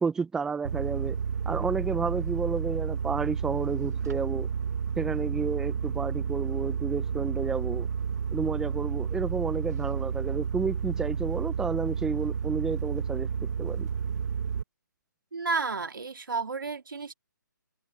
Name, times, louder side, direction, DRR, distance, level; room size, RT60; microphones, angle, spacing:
voice 1, 0.0-4.5 5.0-7.9 8.3-13.9, right 5 dB, 5° right, 1.0 m, -31 dB
sound 1, 0.6-14.6, right 6 dB, 55° right, 2.2 m, -31 dB
voice 2, 15.3-17.1, right 4 dB, 85° right, 2.2 m, -31 dB
hypercardioid pair, 155°, 11 cm